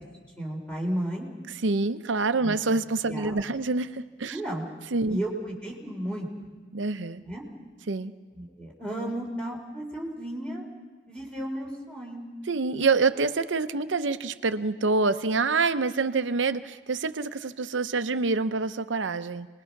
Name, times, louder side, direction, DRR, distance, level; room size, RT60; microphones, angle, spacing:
voice 1, 0.4-1.3 2.4-2.5 3.1-3.4 4.3-4.7 5.1-6.3 7.2-7.4 8.3-10.6 11.1-12.2, right 1 dB, 5° left, -1 dB, 3.7 m, -33 dB
voice 2, 1.6-4.4 4.9-5.2 6.7-7.2 7.9-8.1 12.5-19.5, right 3 dB, 80° right, 11 dB, 0.7 m, -26 dB
28.0 x 21.0 x 6.0 m, 1.4 s
head